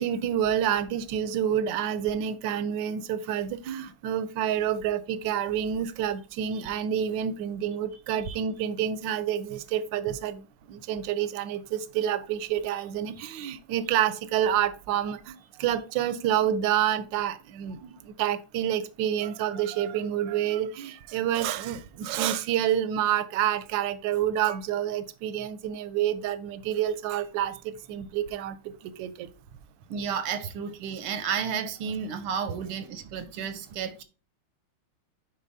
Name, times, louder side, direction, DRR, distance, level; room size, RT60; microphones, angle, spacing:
voice 1, 0.0-10.4 10.7-29.3, right 10 dB, 70° right, 1.2 m, -28 dB
voice 2, 29.9-34.0, right 7 dB, 90° right, 1.7 m, -32 dB
9.9 x 4.4 x 2.7 m
omnidirectional pair, 2.3 m